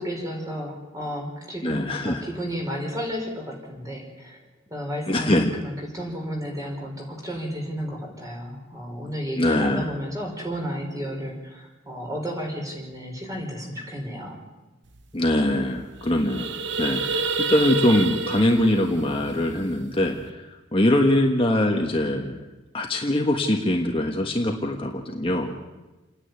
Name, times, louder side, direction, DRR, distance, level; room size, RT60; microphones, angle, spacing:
voice 1, 0.0-4.4 4.7-5.3 5.6-14.4, equal, 15° right, 0 dB, 4.8 m, -32 dB
voice 2, 1.6-2.2 5.1-5.5 9.4-9.9 15.1-22.4 22.7-25.5, left 1 dB, 30° left, 2 dB, 1.4 m, -23 dB
sound 1, 15.0-15.1 15.3-15.5 15.9-20.2, right 3 dB, 65° right, 1.1 m, -29 dB
28.5 x 10.0 x 9.7 m, 1.1 s
head